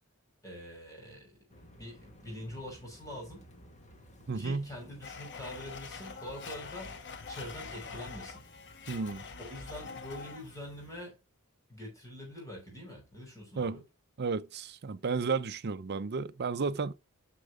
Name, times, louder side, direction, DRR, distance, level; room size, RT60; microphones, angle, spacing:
voice 1, 0.4-1.3 1.8-3.5 4.3-7.0 7.3-8.4 9.4-11.2 11.7-13.8, left 1 dB, 15° left, 6.0 m, -44 dB
sound 1, 1.5-11.0, equal, 35° left, 1.8 m, -57 dB
voice 2, 4.3-4.7 8.9-9.2 13.5-13.8 14.2-16.9, right 4 dB, 50° right, 0.6 m, -32 dB
Domestic sounds home sounds, 5.0-10.7, left 5 dB, 55° left, 1.2 m, -45 dB
9.9 x 6.5 x 3.7 m
head